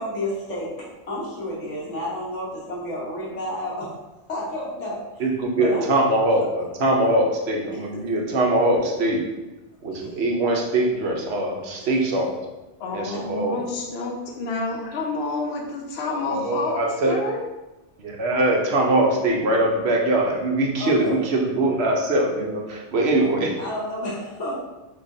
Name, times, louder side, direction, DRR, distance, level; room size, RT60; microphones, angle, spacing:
voice 1, 0.0-3.9 4.3-5.2 5.6-5.8 6.4-6.5 20.8-21.2 23.6-24.6, left 1 dB, 80° left, -6 dB, 1.6 m, -30 dB
voice 2, 5.2-9.2 9.8-12.4 12.9-13.6 16.1-17.2 18.0-23.6, right 1 dB, 65° right, -1 dB, 1.0 m, -22 dB
voice 3, 12.8-16.8 17.1-17.4, left 3 dB, 65° left, 1 dB, 0.9 m, -29 dB
5.7 x 3.2 x 2.7 m, 1.1 s
omnidirectional pair, 1.2 m